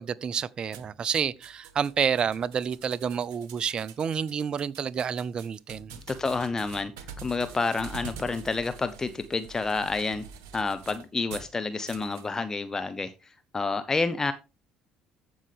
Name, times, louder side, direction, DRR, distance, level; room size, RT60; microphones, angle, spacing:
voice 1, 0.0-6.0, right 7 dB, 40° right, 0.5 m, -29 dB
sound 1, 0.7-11.5 11.9-12.3, right 6 dB, 70° right, 1.1 m, -46 dB
voice 2, 6.1-6.9 7.2-10.2 10.5-13.1 13.5-14.3, left 3 dB, 25° left, 0.8 m, -29 dB
14.5 x 5.5 x 3.4 m
hypercardioid pair, 55°, 2 cm